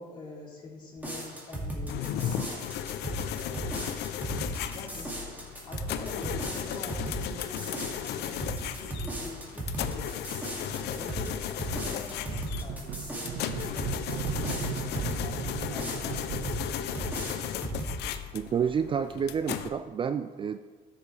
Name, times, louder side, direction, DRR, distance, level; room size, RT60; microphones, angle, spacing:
voice 1, 0.0-2.7 3.3-4.3 4.7-5.4 5.7-10.3 10.8-17.1, left 2 dB, 30° left, -4 dB, 3.1 m, -45 dB
sound 1, 1.0-15.3 15.8-16.6 16.9-18.0, right 1 dB, 10° right, 2.3 m, -37 dB
sound 2, 1.9-19.7, left 10 dB, 80° left, 0.6 m, -36 dB
sound 3, 10.7-11.4 11.7-17.7, right 7 dB, 75° right, 0.9 m, -38 dB
voice 2, 18.3-20.6, right 7 dB, 30° right, 10 dB, 0.3 m, -29 dB
12.5 x 7.4 x 3.3 m, 1.4 s
cardioid pair, 110°, 17 cm